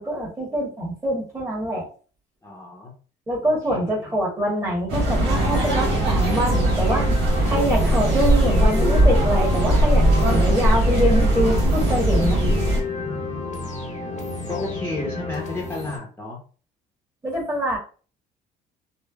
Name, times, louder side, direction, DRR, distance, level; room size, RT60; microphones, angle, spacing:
voice 1, 0.0-1.9 3.3-7.1 7.5-12.4 17.2-17.8, equal, 15° right, -2 dB, 1.2 m, -24 dB
voice 2, 2.4-2.9 3.7-3.9 13.0-13.9 14.5-16.4, left 2 dB, 15° left, -4 dB, 0.7 m, -33 dB
sound 1, 4.9-12.8, right 1 dB, 80° right, 1.2 m, -19 dB
sound 2, 5.2-16.0, left 3 dB, 45° left, 0.8 m, -31 dB
3.2 x 2.1 x 2.2 m, 0.38 s
cardioid pair, 110°, 17 cm